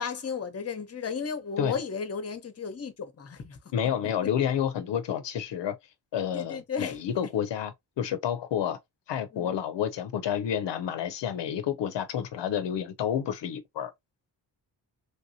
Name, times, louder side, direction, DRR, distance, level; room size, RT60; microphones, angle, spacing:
voice 1, 0.0-3.6 6.3-7.3 9.3-9.6, left 5 dB, 35° left, 0.7 m, -34 dB
voice 2, 3.7-5.8 6.1-8.8 9.1-13.9, left 9 dB, 75° left, 0.5 m, -29 dB
3.3 x 2.7 x 2.7 m
wide cardioid pair, 125°, 43 cm